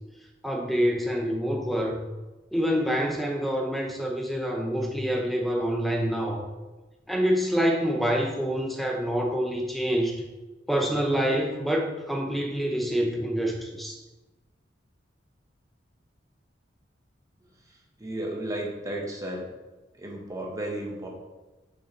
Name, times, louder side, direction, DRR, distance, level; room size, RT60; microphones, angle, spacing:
voice 1, 0.4-2.0 2.5-6.5 7.1-10.2 10.7-14.0, equal, ahead, 1 dB, 0.6 m, -26 dB
voice 2, 17.7-19.4 19.9-21.1, right 1 dB, 20° right, -1 dB, 1.2 m, -34 dB
6.4 x 5.9 x 3.2 m, 1.2 s
head